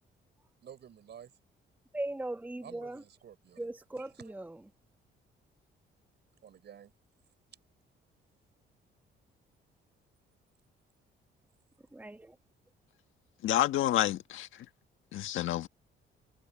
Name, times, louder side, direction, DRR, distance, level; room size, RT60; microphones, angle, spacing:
voice 1, 0.6-1.3 2.6-3.7 4.0-4.3 6.4-6.9, right 9 dB, 60° right, 5.1 m, -51 dB
voice 2, 1.9-3.0 3.6-4.7 11.9-12.4, right 1 dB, 10° right, 1.2 m, -39 dB
voice 3, 13.4-14.7 15.1-15.7, left 13 dB, 80° left, 1.6 m, -29 dB
cardioid pair, 90°, 20 cm